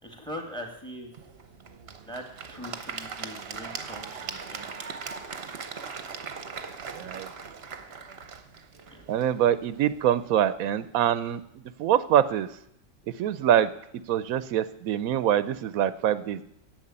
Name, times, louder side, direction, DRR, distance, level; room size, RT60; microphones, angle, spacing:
voice 1, 0.0-1.1 2.0-4.9 8.9-9.0, equal, 5° left, 3 dB, 2.2 m, -41 dB
Applause / Crowd, 1.1-10.2, right 5 dB, 50° right, 1.1 m, -40 dB
voice 2, 6.9-7.3 9.1-11.4 11.8-12.5 13.2-13.7 14.1-16.4, right 10 dB, 85° right, 15 dB, 1.1 m, -24 dB
11.0 x 7.9 x 8.8 m, 0.74 s
omnidirectional pair, 1.4 m